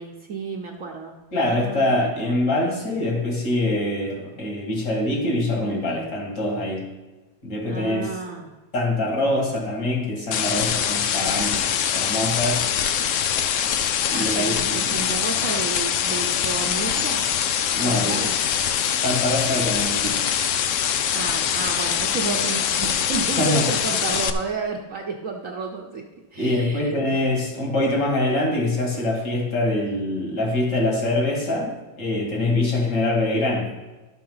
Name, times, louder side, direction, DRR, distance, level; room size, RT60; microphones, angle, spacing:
voice 1, 0.0-1.9 2.2-2.4 7.7-8.6 14.1-17.3 17.8-18.4 21.1-26.0 26.3-27.3, right 4 dB, 55° right, 0 dB, 1.1 m, -32 dB
voice 2, 1.3-6.8 7.4-8.2 8.7-12.6 14.1-14.9 17.7-18.2 18.9-20.2 23.4-23.7 26.4-33.7, left 1 dB, 60° left, 0 dB, 3.0 m, -24 dB
sound 1, 10.3-24.3, left 8 dB, 85° left, 0.6 m, -23 dB
12.0 x 6.0 x 5.6 m, 1.2 s
omnidirectional pair, 2.0 m